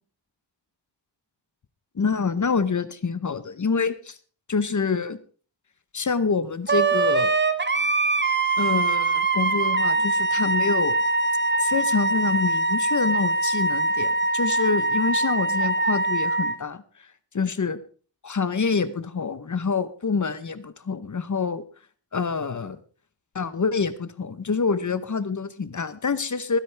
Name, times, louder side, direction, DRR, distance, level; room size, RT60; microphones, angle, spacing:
voice 1, 1.9-4.2 4.5-5.2 5.9-7.3 8.6-11.0 11.6-17.1 17.3-17.8 18.2-21.6 22.1-22.8 23.3-26.6, left 5 dB, 40° left, 14 dB, 0.9 m, -26 dB
Wind instrument woodwind instrument, 6.7-16.5, right 3 dB, 25° right, 1.1 m, -23 dB
22.0 x 10.0 x 3.4 m, 0.40 s
wide cardioid pair, 100°, 45 cm